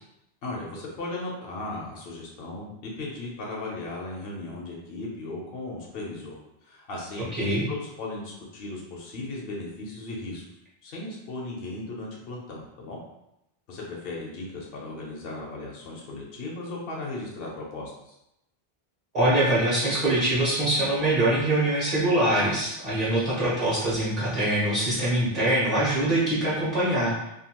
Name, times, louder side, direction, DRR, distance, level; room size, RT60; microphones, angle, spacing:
voice 1, 0.4-6.4 6.6-7.3 7.7-10.4 10.8-13.0 13.7-18.1, left 2 dB, 70° left, -3 dB, 0.8 m, -36 dB
voice 2, 19.1-27.3, right 1 dB, 40° right, -9 dB, 1.2 m, -23 dB
2.7 x 2.3 x 2.8 m, 0.84 s
omnidirectional pair, 1.0 m